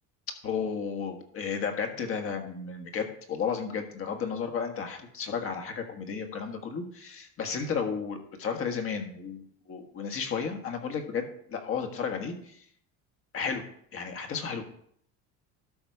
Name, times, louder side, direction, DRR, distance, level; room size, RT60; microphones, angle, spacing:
voice 1, 0.4-9.4 9.7-12.6 13.3-13.6 13.9-14.6, left 6 dB, 40° left, 5 dB, 1.6 m, -33 dB
12.5 x 5.3 x 4.7 m, 0.65 s
cardioid pair, 140°, 33 cm